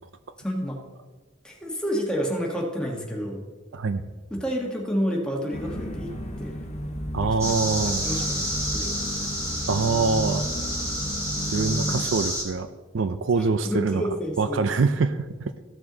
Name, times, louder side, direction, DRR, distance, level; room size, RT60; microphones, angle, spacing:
voice 1, 0.4-0.8 1.4-3.4 4.3-6.1 6.4-6.5 7.2-8.5 8.7-8.9 13.6-14.6, equal, 5° left, -1 dB, 1.4 m, -29 dB
sound 1, 5.5-12.0, equal, 35° left, 1.2 m, -32 dB
voice 2, 7.1-8.1 9.7-10.5 11.4-12.7 12.9-14.0 14.4-15.5, right 4 dB, 65° right, 11 dB, 0.5 m, -24 dB
sound 2, 7.4-12.4, equal, 15° right, 2.3 m, -30 dB
14.5 x 6.1 x 3.9 m, 1.3 s
head